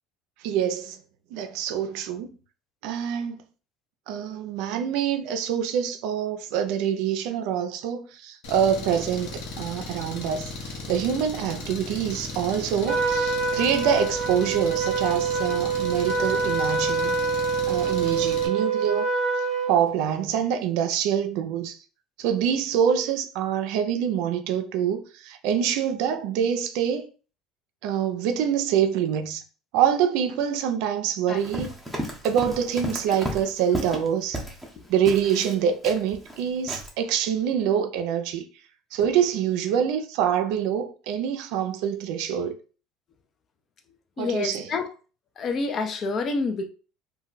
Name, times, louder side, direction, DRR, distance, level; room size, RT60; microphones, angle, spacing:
voice 1, 0.4-1.0 1.3-2.4 2.8-3.4 4.1-17.1 17.7-19.1 19.7-21.8 22.2-27.1 27.8-29.4 29.7-31.7 32.2-34.4 34.9-38.4 38.9-42.6 44.2-44.7, right 8 dB, 75° right, 0.4 m, -25 dB
Engine, 8.4-18.5, left 3 dB, 75° left, 0.8 m, -37 dB
Trumpet, 12.9-19.8, right 5 dB, 40° right, 0.7 m, -25 dB
Run, 31.4-34.7 35.1-36.4 36.7-36.9, equal, ahead, 0.7 m, -33 dB
voice 2, 44.2-44.9 45.4-46.7, left 4 dB, 35° left, 0.4 m, -28 dB
2.2 x 2.2 x 3.8 m
cardioid pair, 130°, 0 cm